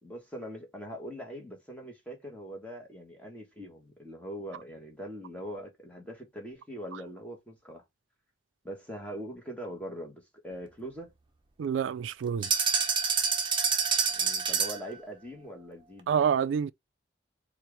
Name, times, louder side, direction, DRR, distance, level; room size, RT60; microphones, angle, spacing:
voice 1, 0.0-7.8 8.6-11.1 14.1-16.1, equal, 5° left, 1.3 m, -42 dB
voice 2, 11.6-12.5 16.1-16.7, right 7 dB, 85° right, 0.3 m, -27 dB
sound 1, 12.4-14.9, right 5 dB, 25° right, 0.7 m, -27 dB
4.3 x 2.5 x 3.3 m
head